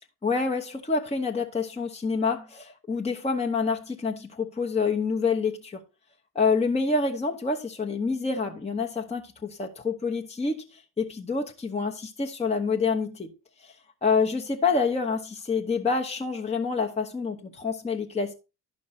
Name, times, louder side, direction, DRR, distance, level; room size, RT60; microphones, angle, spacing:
voice 1, 0.2-5.8 6.3-13.3 13.6-13.8 14.0-18.3, left 4 dB, 15° left, 1.0 m, -27 dB
12.0 x 5.3 x 4.1 m
figure-of-eight pair, 50°, 41 cm